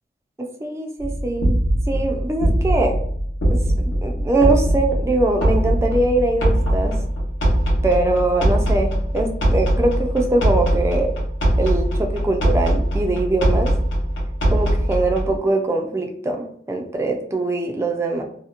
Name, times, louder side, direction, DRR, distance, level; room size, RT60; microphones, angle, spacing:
voice 1, 0.4-1.6 1.9-3.0 3.5-6.9 7.8-11.1 11.6-13.7 14.5-18.2, right 2 dB, 15° right, 2 dB, 0.3 m, -22 dB
sound 1, 1.0-15.4, equal, 80° left, 0.9 m, -21 dB
2.8 x 2.0 x 2.4 m, 0.64 s
head